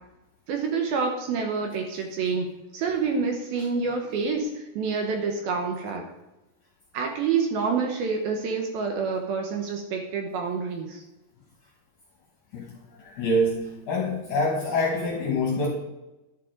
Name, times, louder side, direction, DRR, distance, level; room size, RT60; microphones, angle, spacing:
voice 1, 0.5-6.1 6.9-11.0, right 5 dB, 70° right, 3 dB, 2.5 m, -28 dB
voice 2, 13.0-15.7, left 1 dB, 65° left, -1 dB, 2.0 m, -25 dB
11.0 x 9.6 x 3.8 m, 1.0 s
omnidirectional pair, 5.1 m